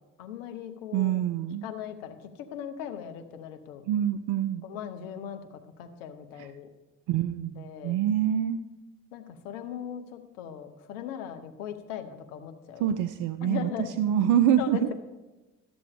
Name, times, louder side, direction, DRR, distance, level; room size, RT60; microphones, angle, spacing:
voice 1, 0.2-1.2 1.6-3.9 4.6-6.7 7.6-8.0 9.1-12.9 13.4-13.9 14.6-14.9, left 9 dB, 70° left, 8 dB, 0.8 m, -39 dB
voice 2, 0.9-1.7 3.9-4.6 6.4-6.5 7.1-8.6 12.8-13.7 14.0-14.9, right 10 dB, 50° right, 12 dB, 0.5 m, -25 dB
13.5 x 6.9 x 3.5 m, 1.1 s
figure-of-eight pair, 45°, 40 cm